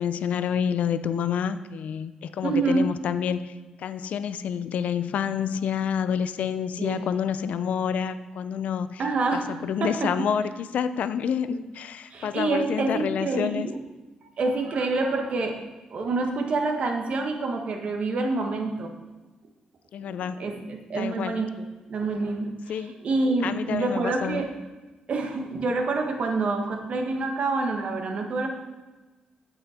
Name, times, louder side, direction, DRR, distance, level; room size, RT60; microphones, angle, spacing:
voice 1, 0.0-3.5 3.8-9.0 9.3-13.7 19.9-20.5 21.0-21.4 22.7-23.0 23.4-24.5, left 7 dB, 70° left, 12 dB, 0.5 m, -28 dB
voice 2, 2.4-2.9 6.8-7.1 9.0-9.5 9.8-10.1 11.5-11.6 12.1-13.8 14.4-15.6 15.9-18.9 20.1-24.5 25.1-28.5, right 3 dB, 55° right, 3 dB, 1.4 m, -27 dB
8.7 x 8.1 x 4.3 m, 1.2 s
cardioid pair, 115°, 3 cm